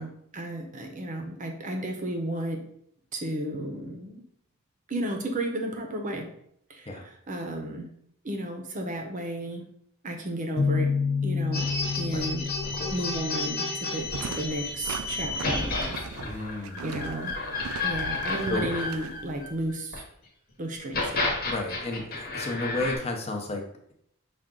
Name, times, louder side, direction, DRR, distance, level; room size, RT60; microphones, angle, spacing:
voice 1, 0.0-2.6 3.1-4.2 4.9-6.3 6.7-7.9 8.2-9.6 10.0-10.9 11.2-11.7 11.9-12.4 12.9-17.3 17.8-20.0 20.6-21.3, right 1 dB, 40° right, 4 dB, 0.6 m, -33 dB
sound 1, 10.6-14.3, left 5 dB, 75° left, 0.6 m, -29 dB
sound 2, 11.5-20.0 20.8-23.0, left 3 dB, 50° left, 1.1 m, -31 dB
sound 3, 14.0-19.7, right 6 dB, 90° right, 0.3 m, -40 dB
voice 2, 16.2-17.0 18.5-18.7 21.4-23.6, left 2 dB, 30° left, 1 dB, 0.6 m, -32 dB
5.8 x 2.4 x 3.7 m, 0.70 s
head